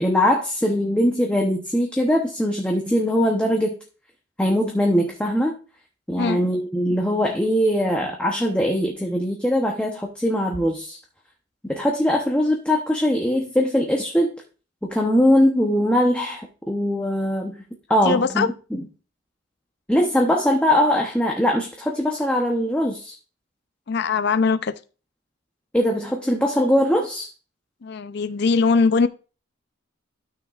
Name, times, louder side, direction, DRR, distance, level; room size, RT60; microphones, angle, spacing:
voice 1, 0.0-3.8 4.4-5.5 6.1-11.0 11.6-14.3 14.8-17.6 17.9-18.8 19.9-23.1 25.7-27.3, equal, 5° left, 1 dB, 0.8 m, -21 dB
voice 2, 18.0-18.5 23.9-24.8 27.8-29.1, left 4 dB, 55° left, 13 dB, 0.5 m, -20 dB
12.5 x 6.3 x 2.4 m, 0.35 s
head